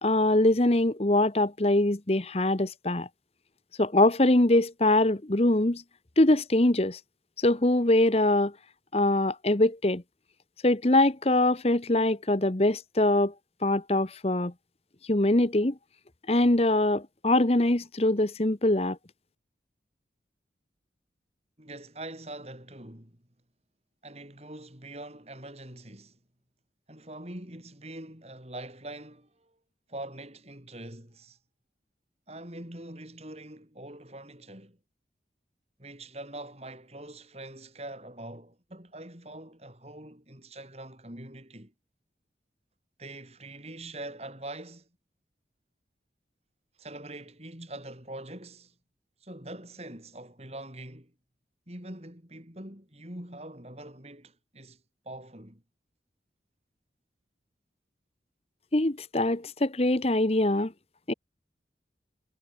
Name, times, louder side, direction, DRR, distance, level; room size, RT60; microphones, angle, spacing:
voice 1, 0.0-3.1 3.8-5.8 6.2-7.0 7.4-8.5 8.9-10.0 10.6-13.3 13.6-14.5 15.1-15.7 16.3-19.0 58.7-60.7 61.1-61.2, left 1 dB, 35° left, 1.1 m, -23 dB
voice 2, 21.6-23.2 24.0-26.2 26.9-29.5 29.9-31.4 32.3-34.8 35.8-41.7 43.0-44.9 46.8-48.7 49.2-51.1 51.7-55.6, right 1 dB, 35° right, 6.0 m, -43 dB
head